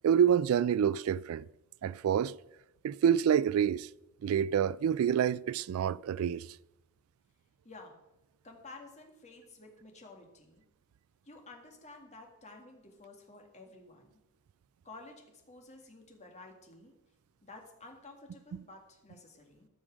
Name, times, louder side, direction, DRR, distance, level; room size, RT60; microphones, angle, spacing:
voice 1, 0.0-1.5 1.8-2.3 2.8-3.9 4.2-6.5, right 8 dB, 75° right, 0.3 m, -27 dB
voice 2, 7.6-8.0 8.4-10.6 11.3-14.1 14.8-16.9 17.4-19.7, left 2 dB, 30° left, 1.9 m, -52 dB
13.5 x 6.3 x 6.2 m
head